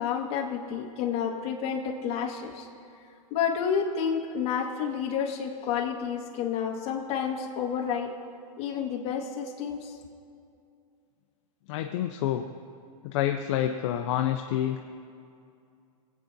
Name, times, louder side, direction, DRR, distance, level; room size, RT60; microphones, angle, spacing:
voice 1, 0.0-2.7 3.3-8.1 8.6-9.9, left 7 dB, 30° left, 0 dB, 1.5 m, -30 dB
voice 2, 11.7-12.4 13.0-14.8, left 11 dB, 55° left, 4 dB, 0.6 m, -28 dB
24.5 x 8.4 x 2.7 m, 2.4 s
supercardioid pair, 150°, 19 cm